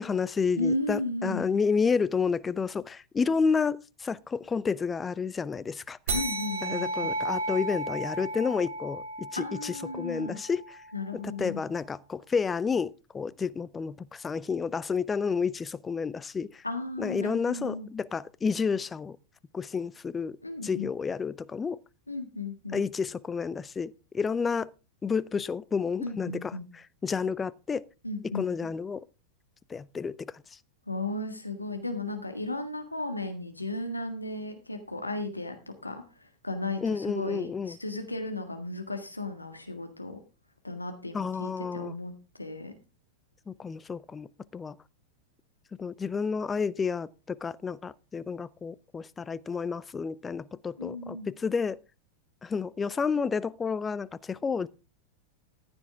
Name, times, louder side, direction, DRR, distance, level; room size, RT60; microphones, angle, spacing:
voice 1, 0.0-6.0 6.6-10.8 11.1-16.6 17.0-19.2 19.5-20.4 20.6-21.8 22.7-24.7 25.0-27.8 28.3-29.1 29.7-30.4 36.8-37.8 41.1-41.9 43.5-44.8 45.8-51.8 52.4-54.7, left 5 dB, 15° left, 0.5 m, -30 dB
voice 2, 0.6-1.4 6.1-7.1 9.4-10.4 10.9-11.6 16.6-17.9 20.4-20.9 22.1-22.8 26.0-26.7 28.0-28.5 30.9-35.5 35.8-40.2 40.6-42.7 50.8-51.3, left 2 dB, 85° left, 1.6 m, -35 dB
sound 1, 6.1-11.0, right 1 dB, 55° right, 2.9 m, -34 dB
14.5 x 8.8 x 3.5 m
figure-of-eight pair, 90°, 0 cm